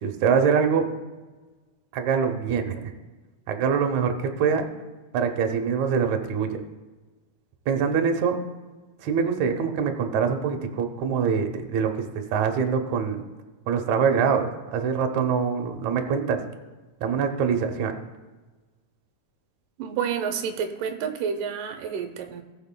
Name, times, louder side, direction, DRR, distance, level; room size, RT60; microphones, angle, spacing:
voice 1, 0.0-0.9 1.9-2.9 3.5-4.7 5.1-6.6 7.7-8.4 9.0-13.2 13.7-16.4 17.0-17.9, right 6 dB, 70° right, 5 dB, 2.1 m, -24 dB
voice 2, 19.8-22.4, right 7 dB, 90° right, 6 dB, 2.4 m, -29 dB
18.5 x 6.5 x 2.2 m, 1.3 s
omnidirectional pair, 3.7 m